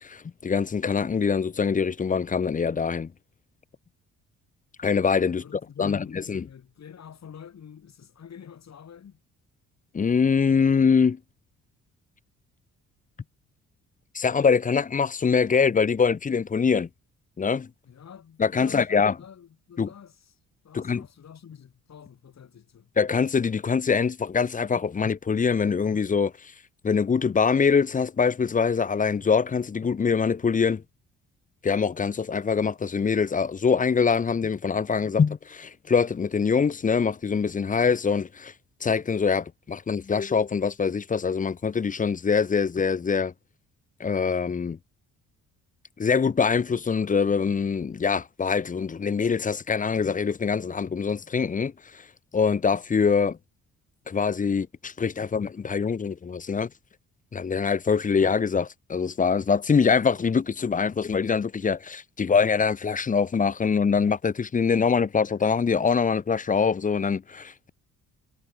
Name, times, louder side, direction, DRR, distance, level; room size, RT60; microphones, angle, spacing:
voice 1, 0.0-3.1 4.8-5.4 5.8-6.4 9.9-11.2 14.1-16.9 17.4-17.7 18.4-19.1 19.8-19.9 20.7-21.0 23.0-26.3 26.8-30.8 31.6-38.5 38.8-43.3 44.0-44.8 46.0-51.7 52.3-53.4 54.1-56.7 57.3-67.7, left 5 dB, 25° left, 0.6 m, -24 dB
voice 2, 5.3-9.2 17.8-20.4 20.6-22.9, left 8 dB, 50° left, 3.7 m, -47 dB
supercardioid pair, 55°, 33 cm